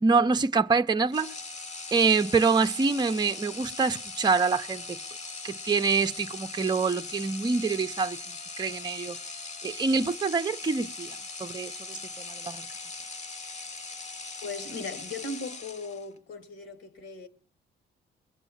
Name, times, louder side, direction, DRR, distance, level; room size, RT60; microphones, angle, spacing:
voice 1, 0.0-1.3 1.9-4.8 5.4-8.2 8.6-9.2 9.6-12.0 12.3-12.7, right 4 dB, 20° right, 0.7 m, -25 dB
sound 1, 1.1-16.2, left 3 dB, 35° left, 1.1 m, -40 dB
voice 2, 14.4-17.3, left 3 dB, 75° left, 2.5 m, -38 dB
21.5 x 8.1 x 7.2 m
cardioid pair, 90°, 20 cm